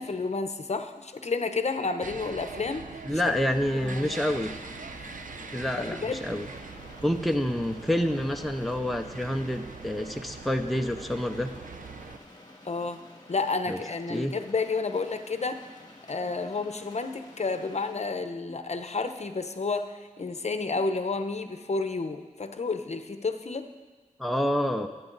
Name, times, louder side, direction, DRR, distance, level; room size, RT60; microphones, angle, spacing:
voice 1, 0.0-2.8 3.1-3.3 3.7-4.1 5.0-5.2 5.9-6.2 12.6-15.6 16.1-23.7, left 4 dB, 55° left, 8 dB, 0.9 m, -31 dB
sound 1, 2.0-12.2, right 4 dB, 75° right, 0.8 m, -43 dB
voice 2, 3.0-4.5 5.5-6.5 7.0-11.5 13.7-13.8 14.1-14.3 24.2-24.9, left 1 dB, ahead, 5 dB, 0.7 m, -28 dB
sound 2, 3.2-18.0, left 2 dB, 30° left, 2.1 m, -50 dB
25.0 x 9.2 x 4.0 m, 1.3 s
wide cardioid pair, 95°, 14 cm